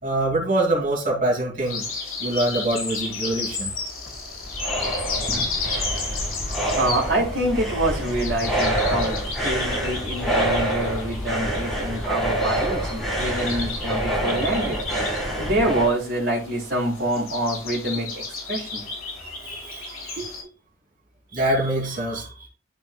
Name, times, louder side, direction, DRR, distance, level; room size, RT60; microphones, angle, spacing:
voice 1, 0.0-1.8 2.2-3.7 6.5-6.7 19.4-20.3 21.3-22.5, right 1 dB, 40° right, -1 dB, 2.7 m, -25 dB
sound 1, 1.7-20.4, left 3 dB, 80° left, 3.6 m, -33 dB
sound 2, 4.1-15.9, right 1 dB, ahead, 2.0 m, -26 dB
voice 2, 6.5-14.8 15.4-18.8 20.2-20.3, right 1 dB, 55° right, -8 dB, 3.2 m, -26 dB
12.5 x 5.2 x 2.3 m, 0.37 s
head